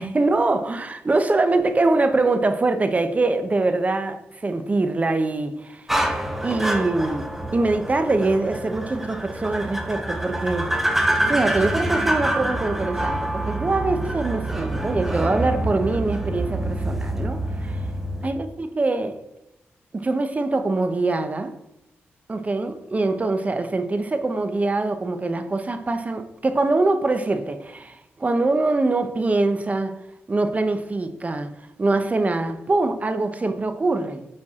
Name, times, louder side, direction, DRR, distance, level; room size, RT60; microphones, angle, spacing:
voice 1, 0.0-5.9 6.4-11.0 11.3-17.8 18.2-19.2 19.9-21.6 22.3-29.9 30.3-34.3, right 2 dB, 35° right, 0.9 m, -23 dB
sound 1, 5.9-18.3, right 1 dB, 5° right, 1.1 m, -26 dB
8.6 x 4.7 x 3.7 m
cardioid pair, 65°, 5 cm